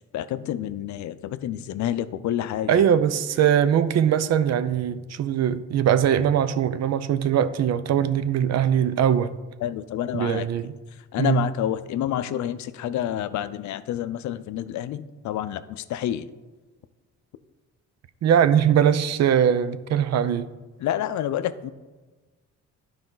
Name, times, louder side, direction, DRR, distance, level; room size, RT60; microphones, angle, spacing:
voice 1, 0.1-2.8 9.6-10.5 11.1-16.3 20.8-21.7, left 11 dB, 70° left, 0.5 m, -28 dB
voice 2, 2.7-9.3 10.1-10.7 11.2-11.5 18.2-20.5, right 9 dB, 60° right, 0.5 m, -21 dB
10.5 x 4.7 x 3.9 m
cardioid pair, 90°, 30 cm